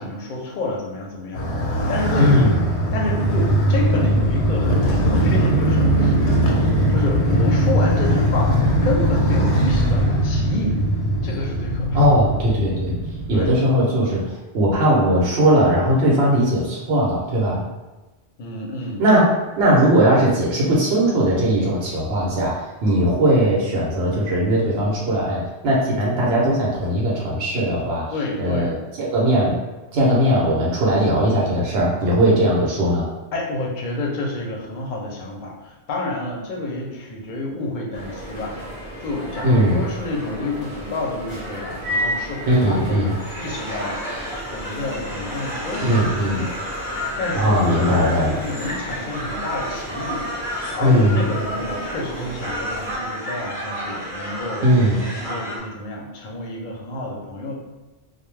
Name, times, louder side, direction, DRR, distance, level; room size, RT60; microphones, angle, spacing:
voice 1, 0.0-1.5 1.9-2.5 2.9-6.1 6.6-10.8 11.2-12.1 13.3-13.5 18.4-19.0 28.1-28.7 33.3-38.6 39.0-44.0 44.5-46.0 46.3-46.6 47.2-54.7 55.1-57.5, left 2 dB, 55° left, -1 dB, 0.6 m, -29 dB
Motorcycle, 1.3-13.6, right 1 dB, 90° left, 0.9 m, -20 dB
voice 2, 2.2-2.6 11.9-12.9 13.3-17.6 19.0-28.1 28.4-29.6 29.9-33.1 39.4-39.8 42.5-43.1 45.8-46.4 47.3-48.4 50.8-51.2 54.6-55.1, equal, 75° right, -4 dB, 0.9 m, -19 dB
sound 1, 37.9-53.0, equal, 30° right, 0.7 m, -33 dB
sound 2, 43.2-55.6, equal, 5° right, 0.4 m, -31 dB
2.2 x 2.0 x 3.1 m, 1.1 s
omnidirectional pair, 1.1 m